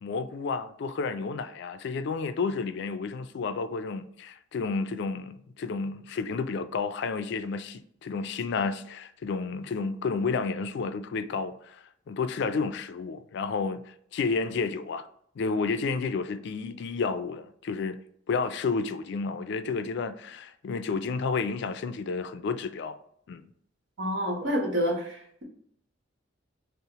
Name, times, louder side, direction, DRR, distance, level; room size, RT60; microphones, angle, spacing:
voice 1, 0.0-15.1 15.4-18.0 18.3-23.0 23.3-23.4, left 4 dB, 60° left, 0.3 m, -31 dB
voice 2, 24.0-25.4, equal, 70° right, 1.1 m, -28 dB
5.5 x 2.0 x 2.9 m
head